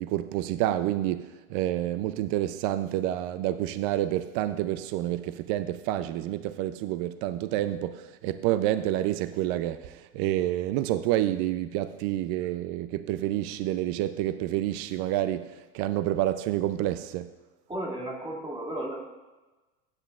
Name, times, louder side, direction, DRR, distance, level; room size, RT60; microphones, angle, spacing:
voice 1, 0.0-17.3, right 13 dB, 55° right, 0.5 m, -28 dB
voice 2, 17.7-19.1, right 1 dB, 15° right, 2.4 m, -34 dB
15.0 x 9.1 x 2.4 m
supercardioid pair, 110°, 37 cm